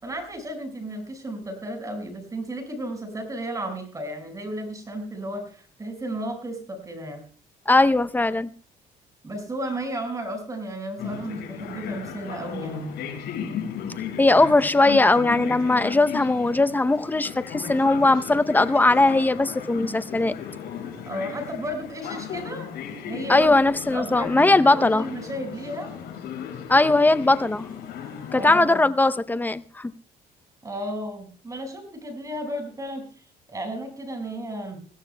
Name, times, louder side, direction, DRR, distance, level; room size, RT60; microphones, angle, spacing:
voice 1, 0.0-7.2 9.2-12.9 21.1-22.7 23.1-23.6 23.9-25.9 28.3-28.9 30.6-33.1 33.5-34.8, right 1 dB, 20° right, 4 dB, 5.5 m, -33 dB
voice 2, 7.7-8.5 14.2-20.3 23.3-25.1 26.7-27.6 28.3-29.9, left 2 dB, 10° left, 12 dB, 0.6 m, -19 dB
sound 1, 11.0-28.6, left 8 dB, 75° left, 6.0 m, -36 dB
21.5 x 16.5 x 2.2 m, 0.40 s
cardioid pair, 110°, 17 cm